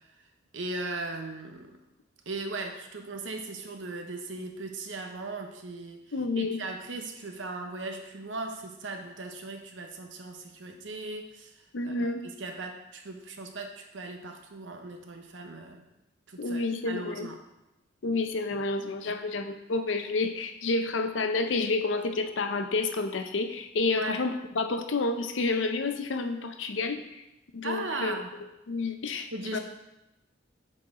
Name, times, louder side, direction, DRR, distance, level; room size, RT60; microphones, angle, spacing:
voice 1, 0.5-1.7 2.3-6.0 6.4-11.5 11.8-15.8 16.3-17.4 19.1-19.2 24.0-24.2 27.6-28.4 29.3-29.6, right 2 dB, 80° right, 4 dB, 0.9 m, -38 dB
voice 2, 6.1-6.6 11.7-12.2 16.4-17.3 18.0-27.0 27.5-28.1 28.7-29.6, left 3 dB, 80° left, 7 dB, 0.6 m, -29 dB
7.8 x 4.4 x 3.7 m, 0.93 s
head